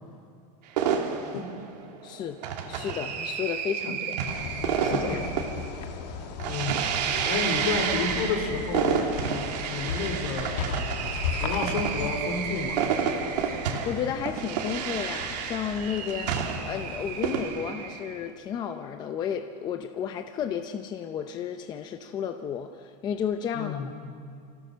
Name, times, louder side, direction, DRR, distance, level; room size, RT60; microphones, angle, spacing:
sound 1, 0.8-18.3, right 7 dB, 85° right, 2.6 m, -30 dB
voice 1, 2.0-4.1 4.8-5.2 13.8-16.3 16.7-23.9, left 8 dB, 20° left, 7 dB, 0.6 m, -33 dB
sound 2, 4.3-17.4, left 6 dB, 80° left, 2.0 m, -37 dB
voice 2, 4.9-5.2 6.4-6.8 7.2-10.8 11.4-12.9 23.5-23.9, left 4 dB, 60° left, 5 dB, 3.6 m, -31 dB
26.5 x 16.5 x 6.3 m, 2.4 s
supercardioid pair, 170°, 21 cm